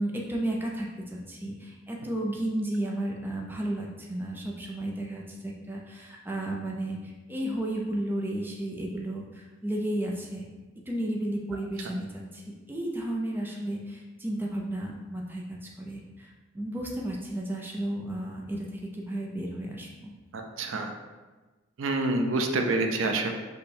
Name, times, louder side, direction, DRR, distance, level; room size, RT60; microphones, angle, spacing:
voice 1, 0.0-10.4 10.9-12.4 12.7-18.7 18.9-20.1, right 1 dB, 10° right, -2 dB, 0.5 m, -33 dB
voice 2, 20.3-20.9 21.8-23.3, right 2 dB, 80° right, 4 dB, 0.5 m, -27 dB
5.2 x 2.2 x 4.3 m, 1.2 s
head